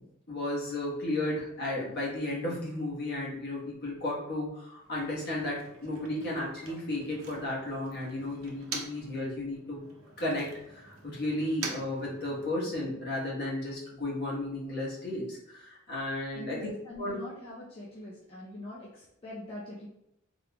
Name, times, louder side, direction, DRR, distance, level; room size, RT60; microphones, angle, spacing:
voice 1, 0.3-9.8 10.2-16.6 17.0-17.2, left 1 dB, 50° left, -5 dB, 1.2 m, -34 dB
Motor vehicle (road), 4.7-9.2 9.5-12.8, right 5 dB, 90° right, 0.7 m, -45 dB
voice 2, 16.3-19.9, left 1 dB, 25° left, -7 dB, 0.5 m, -43 dB
3.7 x 3.1 x 2.2 m, 0.81 s
head